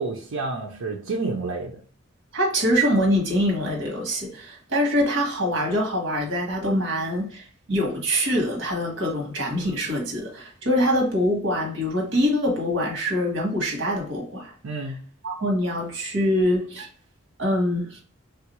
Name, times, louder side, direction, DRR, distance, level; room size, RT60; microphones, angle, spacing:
voice 1, 0.0-1.8 14.6-15.0, right 3 dB, 80° right, 0.6 m, -29 dB
voice 2, 2.3-14.5 15.2-16.9 17.4-18.0, equal, 65° right, 1.1 m, -24 dB
3.3 x 2.4 x 2.9 m
head